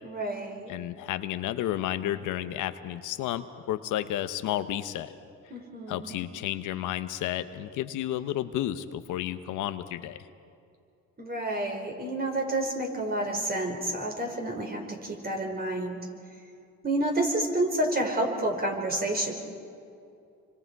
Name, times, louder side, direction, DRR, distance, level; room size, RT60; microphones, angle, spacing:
voice 1, 0.0-0.7 5.5-6.2 11.2-16.0 16.8-19.3, right 1 dB, 30° right, 2 dB, 4.4 m, -29 dB
voice 2, 0.7-5.1 5.9-10.3, left 12 dB, 90° left, 10 dB, 0.9 m, -32 dB
27.5 x 24.5 x 4.7 m, 2.5 s
cardioid pair, 90°, 30 cm